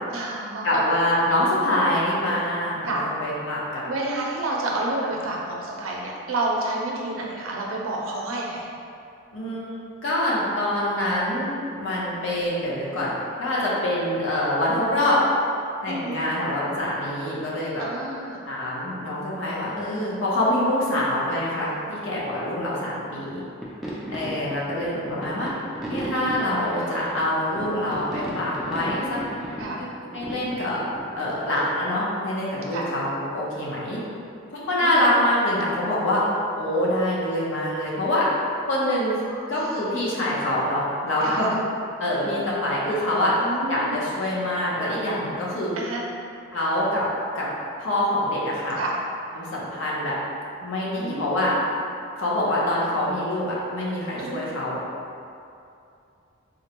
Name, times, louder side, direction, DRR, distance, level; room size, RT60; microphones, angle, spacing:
voice 1, 0.1-0.7 2.8-3.0 3.9-8.7 15.9-16.3 17.8-18.4 29.6-29.8 32.7-32.8 34.8-35.0 39.2-39.9 41.2-41.4 43.4-44.0 45.8-46.0 48.8-49.0 51.0-51.6 54.2-54.4, right 2 dB, 80° right, -2 dB, 0.5 m, -30 dB
voice 2, 0.6-3.8 9.3-15.2 15.8-17.8 18.4-23.4 24.1-25.5 25.9-29.2 29.8-29.9 30.1-30.8 31.2-34.0 34.7-36.2 36.6-38.3 38.7-39.2 39.5-41.6 42.0-43.3 43.7-45.7 46.5-47.1 47.3-47.5 47.8-48.8 49.3-50.2 50.6-51.5 52.2-54.8, left 1 dB, 65° left, -6 dB, 0.7 m, -25 dB
sound 1, 23.6-31.4, right 1 dB, ahead, 0.3 m, -35 dB
3.8 x 2.2 x 2.9 m, 2.6 s
head